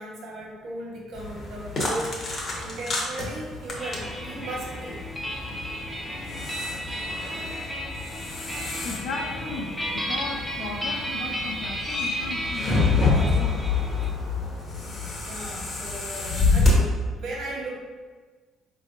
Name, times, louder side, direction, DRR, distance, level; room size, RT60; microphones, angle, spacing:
voice 1, 0.0-5.0 6.4-6.5 15.3-17.7, right 1 dB, 70° right, -3 dB, 1.2 m, -36 dB
sound 1, 1.1-16.7, left 3 dB, 45° left, 0.9 m, -28 dB
sound 2, 3.8-14.1, equal, ahead, 0.5 m, -34 dB
voice 2, 8.8-13.6, left 3 dB, 75° left, 3 dB, 0.5 m, -35 dB
4.2 x 3.3 x 2.5 m, 1.4 s
cardioid pair, 115°, 0 cm